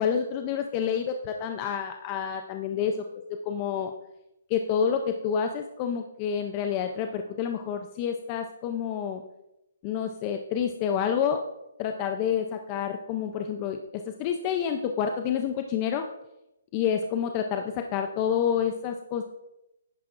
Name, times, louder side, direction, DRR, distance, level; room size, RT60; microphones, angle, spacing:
voice 1, 0.0-3.0 3.5-3.9 4.5-9.2 9.8-11.4 11.8-16.0 16.7-19.2, left 8 dB, 25° left, 5 dB, 0.5 m, -28 dB
10.5 x 9.3 x 2.5 m, 0.89 s
hypercardioid pair, 165°, 0 cm